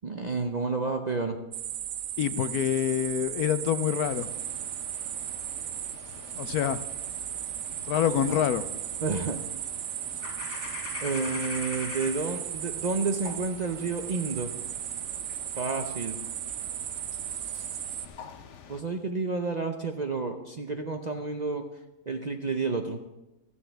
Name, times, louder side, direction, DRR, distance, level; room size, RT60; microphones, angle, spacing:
voice 1, 0.0-1.4 9.0-9.4 11.0-14.5 15.6-16.2 18.7-21.7 22.1-23.0, right 4 dB, 45° right, 0.5 m, -30 dB
sound 1, 1.5-18.1, right 11 dB, 70° right, 1.0 m, -36 dB
voice 2, 2.2-4.3 6.3-6.8 7.8-8.6, left 10 dB, 85° left, 1.1 m, -26 dB
sound 2, 4.0-18.8, left 6 dB, 55° left, 1.1 m, -45 dB
14.0 x 13.5 x 3.4 m
omnidirectional pair, 1.6 m